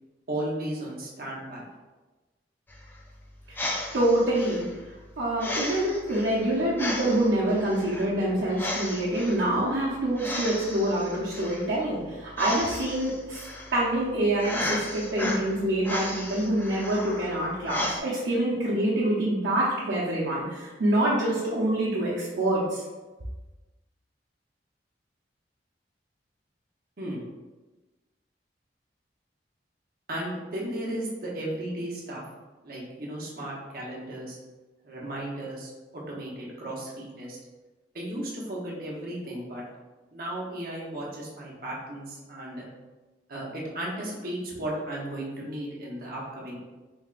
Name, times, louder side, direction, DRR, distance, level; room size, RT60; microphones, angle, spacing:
voice 1, 0.3-1.6 27.0-27.2 30.1-32.2 32.6-34.4 34.8-37.4 37.9-39.6 40.1-42.7 43.3-46.6, right 1 dB, 55° right, -4 dB, 0.9 m, -35 dB
sound 1, 2.7-18.0, left 1 dB, 10° left, 0.3 m, -35 dB
voice 2, 3.9-4.6 5.2-13.4 13.7-22.8, right 1 dB, 80° right, -8 dB, 0.8 m, -26 dB
3.5 x 3.4 x 2.5 m, 1.2 s
head